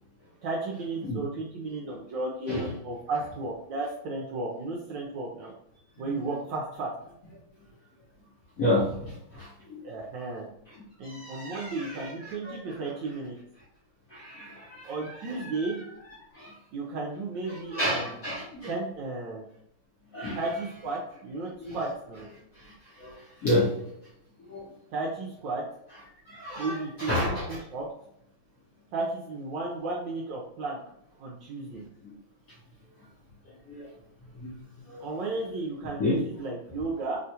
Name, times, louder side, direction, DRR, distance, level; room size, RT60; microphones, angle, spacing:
voice 1, 0.4-5.5 6.0-6.9 9.8-10.5 11.0-13.3 14.8-15.8 16.7-18.2 18.7-19.4 20.3-22.3 24.9-25.6 26.6-27.9 28.9-30.8 31.2-31.8 35.0-37.2, right 3 dB, 75° right, -2 dB, 1.1 m, -34 dB
voice 2, 8.6-9.8 11.0-12.6 14.1-15.5 16.3-16.5 17.5-18.7 20.1-20.4 21.6-21.8 22.5-23.1 23.4-23.7 24.5-24.7 26.3-27.6 32.0-32.1 33.7-33.9 34.3-34.5 34.9-35.0 36.0-36.2, left 1 dB, 55° left, -7 dB, 1.0 m, -31 dB
3.6 x 2.3 x 2.7 m, 0.75 s
omnidirectional pair, 2.4 m